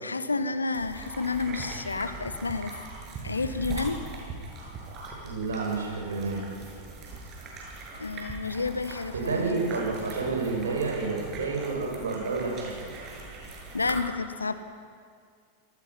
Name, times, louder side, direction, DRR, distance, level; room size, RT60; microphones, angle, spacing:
voice 1, 0.0-2.7 3.2-4.0 8.0-9.6 13.7-14.5, left 4 dB, 80° left, 12 dB, 1.2 m, -30 dB
sound 1, 0.7-14.0, right 3 dB, 30° right, 7.5 m, -41 dB
voice 2, 5.1-6.4 9.1-12.9, right 4 dB, 70° right, 0 dB, 7.0 m, -30 dB
28.0 x 20.0 x 6.0 m, 2.1 s
figure-of-eight pair, 90°, 0 cm